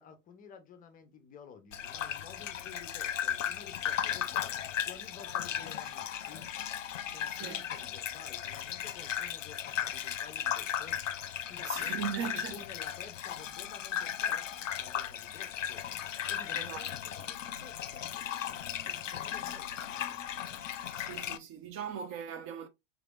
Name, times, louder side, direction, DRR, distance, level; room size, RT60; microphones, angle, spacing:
voice 1, 0.0-4.5 4.8-6.4 7.1-11.0 11.5-15.8 16.3-20.2, left 6 dB, 20° left, 0.6 m, -52 dB
Gurgling / Bathtub (filling or washing), 1.7-21.4, left 10 dB, 80° left, 0.5 m, -36 dB
voice 2, 7.3-7.6 11.7-12.6 16.5-16.9 21.0-22.7, right 8 dB, 35° right, 0.6 m, -39 dB
3.5 x 3.4 x 2.3 m
figure-of-eight pair, 95°, 38 cm